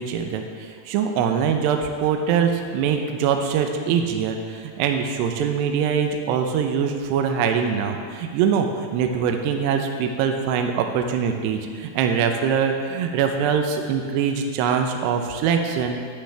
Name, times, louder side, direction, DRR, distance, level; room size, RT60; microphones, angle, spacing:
voice 1, 0.1-16.0, right 7 dB, 80° right, 4 dB, 2.5 m, -23 dB
11.5 x 9.6 x 3.3 m, 2.2 s
omnidirectional pair, 5.5 m